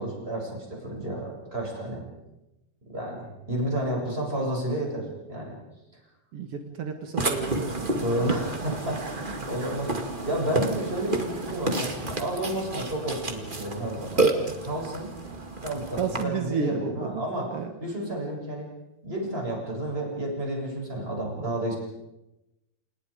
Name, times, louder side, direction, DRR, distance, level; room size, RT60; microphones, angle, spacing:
voice 1, 0.0-2.0 2.9-5.6 7.9-9.9 10.2-15.1 15.6-17.5 17.8-18.7 19.0-21.8, right 1 dB, 15° right, -1 dB, 7.3 m, -31 dB
voice 2, 6.3-8.1 16.0-17.2 17.5-17.7, right 5 dB, 60° right, 5 dB, 1.5 m, -31 dB
Burping eructation, 7.2-16.2, right 2 dB, 30° right, 0.9 m, -30 dB
30.0 x 28.5 x 5.1 m, 0.96 s
omnidirectional pair, 4.8 m